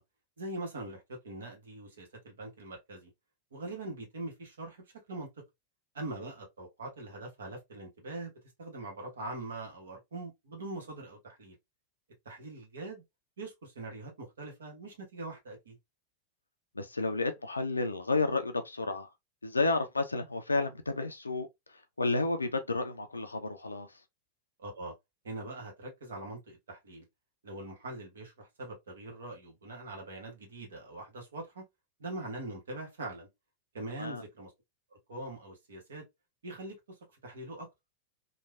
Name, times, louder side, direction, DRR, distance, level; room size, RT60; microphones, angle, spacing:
voice 1, 0.4-3.1 3.5-5.3 5.9-8.3 8.6-11.6 12.2-13.0 13.4-15.8 24.6-24.9 25.2-27.0 27.4-31.6 32.0-33.3 33.7-34.5 34.9-36.0 36.4-36.7 37.2-37.7, right 2 dB, 65° right, 1.1 m, -42 dB
voice 2, 16.8-19.1 19.4-23.9 34.0-34.2, left 3 dB, 80° left, 0.3 m, -31 dB
3.1 x 2.2 x 2.3 m
figure-of-eight pair, 90°, 0 cm